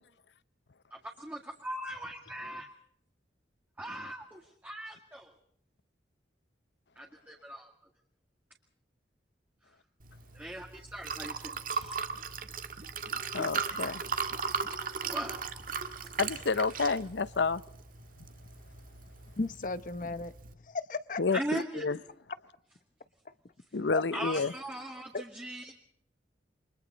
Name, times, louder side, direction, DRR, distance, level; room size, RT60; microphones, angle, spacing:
voice 1, 1.2-2.7 3.8-5.3 7.0-7.7 10.3-12.0 15.0-15.4 21.3-22.0 24.1-25.7, right 1 dB, 10° right, 2.0 m, -39 dB
Liquid, 10.0-20.5, right 5 dB, 50° right, 1.7 m, -38 dB
voice 2, 13.3-14.0 16.2-17.6 21.2-22.0 23.7-24.5, left 4 dB, 75° left, 0.8 m, -29 dB
voice 3, 19.4-20.3 20.6-21.6 23.9-24.0 25.1-25.2, left 3 dB, 45° left, 0.8 m, -35 dB
29.0 x 24.0 x 4.1 m
head